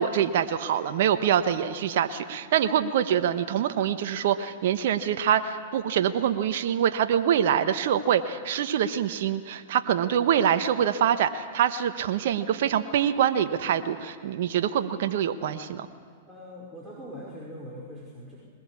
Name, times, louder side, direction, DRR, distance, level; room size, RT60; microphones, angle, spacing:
voice 1, 0.0-15.9, right 9 dB, 65° right, 9 dB, 1.1 m, -25 dB
voice 2, 16.2-18.4, equal, 5° right, -6 dB, 4.9 m, -41 dB
21.5 x 20.0 x 8.5 m, 2.1 s
hypercardioid pair, 115°, 0 cm